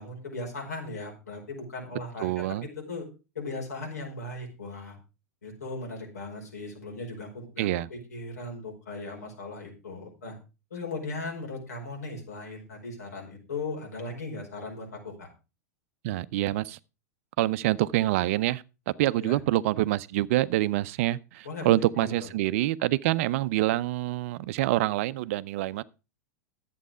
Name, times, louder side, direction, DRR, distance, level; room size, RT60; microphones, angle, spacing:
voice 1, 0.0-3.1 3.3-5.0 5.4-10.3 10.7-15.3 19.2-19.4 21.4-22.3, left 2 dB, 80° left, 4.9 m, -38 dB
voice 2, 2.2-2.7 7.6-7.9 16.0-16.8 17.4-18.6 19.0-25.8, right 16 dB, 55° right, 0.6 m, -26 dB
11.5 x 8.4 x 4.9 m
hypercardioid pair, 95°, 9 cm